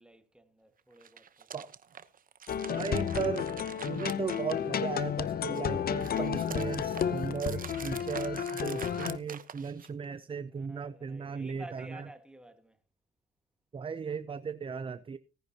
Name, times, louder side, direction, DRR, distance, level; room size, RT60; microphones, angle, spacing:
voice 1, 0.0-1.5 10.5-12.8, right 1 dB, 5° right, 1.8 m, -52 dB
sound 1, 0.9-5.0 5.4-10.0, right 7 dB, 45° right, 1.0 m, -46 dB
sound 2, 2.5-9.2, left 8 dB, 50° left, 0.8 m, -32 dB
voice 2, 2.7-3.5 3.9-12.0 13.7-15.2, right 6 dB, 25° right, 0.5 m, -36 dB
18.5 x 10.5 x 2.9 m
cardioid pair, 90°, 20 cm